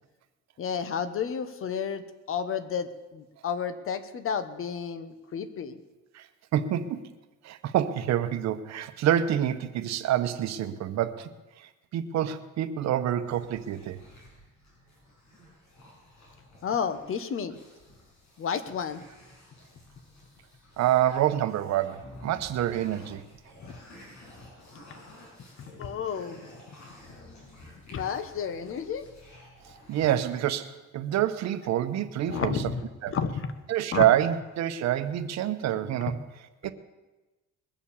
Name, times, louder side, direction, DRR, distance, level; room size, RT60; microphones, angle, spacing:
voice 1, 0.6-2.0 2.3-5.8 16.6-17.6 18.4-19.0 23.6-23.8 24.9-25.0 25.7-26.4 27.9-29.1 32.3-33.5 33.9-34.0, left 7 dB, 45° left, 11 dB, 1.2 m, -31 dB
voice 2, 6.5-7.0 7.4-11.3 11.6-14.0 20.8-23.2 29.9-32.6 33.0-33.1 33.7-36.2 36.6-36.7, right 11 dB, 65° right, 11 dB, 1.0 m, -27 dB
sound 1, 13.2-30.0, left 1 dB, 65° left, 6.6 m, -52 dB
21.0 x 7.2 x 7.2 m, 1.1 s
cardioid pair, 130°, 29 cm